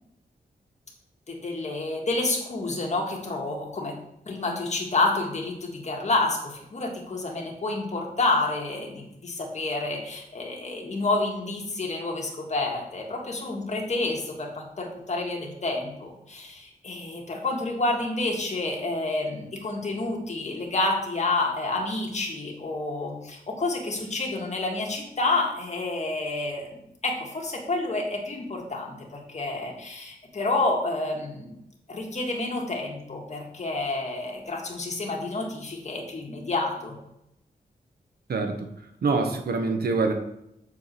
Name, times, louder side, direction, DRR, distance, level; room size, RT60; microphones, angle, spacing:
voice 1, 1.3-3.9 4.3-26.8 27.0-31.5 31.9-37.0, left 2 dB, 45° left, 0 dB, 1.9 m, -29 dB
voice 2, 38.3-38.7 39.0-40.1, right 4 dB, 80° right, 5 dB, 1.2 m, -25 dB
6.9 x 4.7 x 6.9 m, 0.81 s
wide cardioid pair, 135°, 16 cm